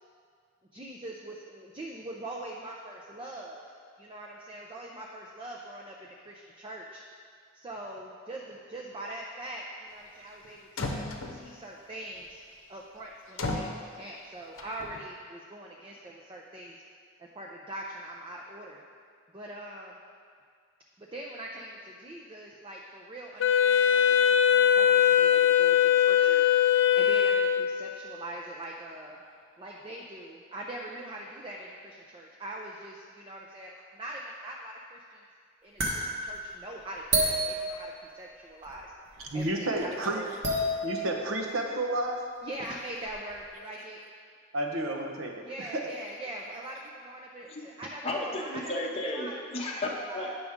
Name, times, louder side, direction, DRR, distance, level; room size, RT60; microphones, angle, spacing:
voice 1, 0.7-3.6 4.0-7.0 7.6-12.4 12.7-16.8 17.3-18.8 19.3-20.0 21.0-24.0 24.3-26.4 27.0-29.2 29.6-35.2 35.6-40.3 42.4-44.0 45.4-48.1 48.4-48.7 49.1-49.3 49.7-49.8 50.1-50.3, right 1 dB, 25° right, -2 dB, 0.5 m, -42 dB
sound 1, 10.4-10.5 10.8-11.6 13.4-13.8 14.6-15.0, left 2 dB, 80° left, 0.8 m, -34 dB
Wind instrument woodwind instrument, 23.4-28.0, left 9 dB, 60° left, 0.3 m, -21 dB
sound 2, 35.8-38.4 38.6-39.5 39.7-39.8 40.3-41.3 42.1-42.2 42.6-42.7 43.1-43.5, right 1 dB, 55° right, 1.2 m, -31 dB
voice 2, 39.2-40.2 40.8-42.2 44.5-45.9, right 1 dB, 75° right, 1 dB, 0.9 m, -31 dB
voice 3, 48.0-50.3, left 1 dB, 30° left, -3 dB, 0.7 m, -33 dB
9.2 x 6.1 x 3.6 m, 2.1 s
head